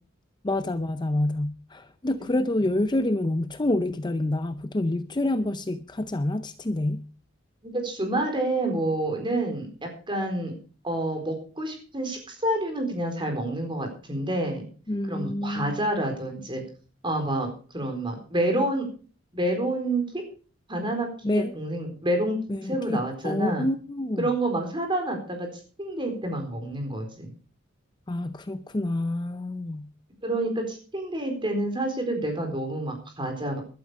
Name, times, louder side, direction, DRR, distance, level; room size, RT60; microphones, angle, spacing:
voice 1, 0.4-7.0 14.9-15.8 21.2-21.5 22.5-24.3 28.1-29.9, left 1 dB, 20° left, 0.5 m, -27 dB
voice 2, 7.6-10.5 10.8-14.6 15.1-16.6 17.0-17.5 17.7-18.8 19.3-20.2 20.7-22.4 22.7-23.7 24.2-25.5 25.8-27.3 30.2-33.6, right 1 dB, 25° right, 4.2 m, -28 dB
12.5 x 12.0 x 5.0 m
head